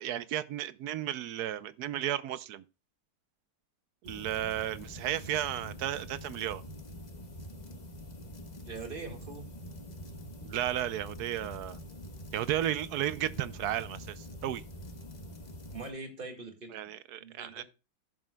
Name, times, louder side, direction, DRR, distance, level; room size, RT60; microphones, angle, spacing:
voice 1, 0.0-2.6 4.0-6.6 10.4-11.8 12.3-14.6 16.7-17.6, right 12 dB, 70° right, 1.0 m, -34 dB
sound 1, 4.0-15.9, equal, 25° left, 1.1 m, -45 dB
voice 2, 8.6-9.5 15.7-16.9 17.2-17.6, right 4 dB, 30° right, 1.9 m, -42 dB
14.5 x 7.4 x 2.2 m
omnidirectional pair, 2.0 m